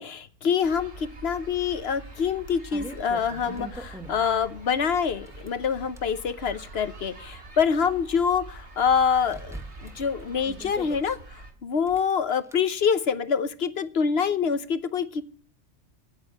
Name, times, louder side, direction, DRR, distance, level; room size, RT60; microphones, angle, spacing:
voice 1, 0.0-15.2, left 6 dB, 60° left, 13 dB, 1.1 m, -26 dB
sound 1, 0.6-11.5, right 2 dB, 70° right, 2.9 m, -45 dB
sound 2, 1.8-1.9 2.4-4.4 5.1-6.1 6.8-8.2 8.5-8.6 9.3-11.2 11.8-12.6, right 1 dB, 5° right, 1.0 m, -43 dB
9.0 x 8.9 x 9.2 m, 0.41 s
omnidirectional pair, 1.2 m